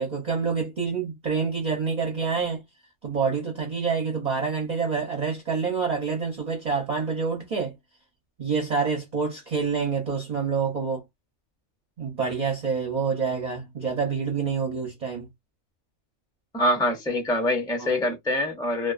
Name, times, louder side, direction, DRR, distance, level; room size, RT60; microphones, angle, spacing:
voice 1, 0.0-2.6 3.0-7.7 8.4-11.0 12.0-15.3 17.8-18.0, right 5 dB, 50° right, 0.5 m, -27 dB
voice 2, 16.5-18.9, left 1 dB, 5° left, 0.4 m, -25 dB
2.4 x 2.2 x 2.4 m
omnidirectional pair, 1.4 m